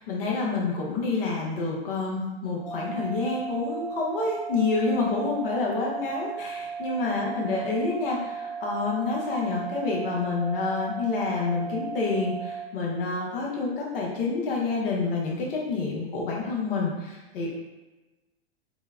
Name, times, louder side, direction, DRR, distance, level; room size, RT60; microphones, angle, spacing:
voice 1, 0.0-17.5, left 3 dB, 60° left, -2 dB, 0.8 m, -28 dB
sound 1, 2.6-12.6, right 6 dB, 15° left, 0.5 m, -36 dB
2.9 x 2.0 x 2.3 m, 1.1 s
hypercardioid pair, 105°, 31 cm